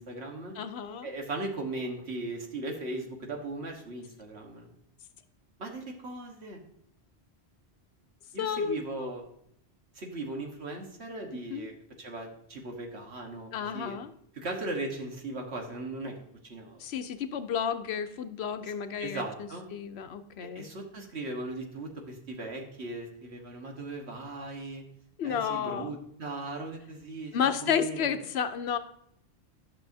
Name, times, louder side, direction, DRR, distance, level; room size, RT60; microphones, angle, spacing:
voice 1, 0.0-0.5 1.0-4.7 5.6-6.6 8.3-9.2 9.9-14.0 14.3-16.1 16.4-16.8 19.0-19.6 20.4-24.8 25.2-28.1, right 2 dB, 80° right, 2 dB, 1.6 m, -38 dB
voice 2, 0.5-1.1 8.4-9.1 11.3-11.7 13.5-14.1 16.8-20.7 25.2-25.9 27.3-28.8, left 7 dB, 75° left, 10 dB, 0.9 m, -32 dB
11.5 x 6.2 x 2.7 m, 0.72 s
omnidirectional pair, 1.1 m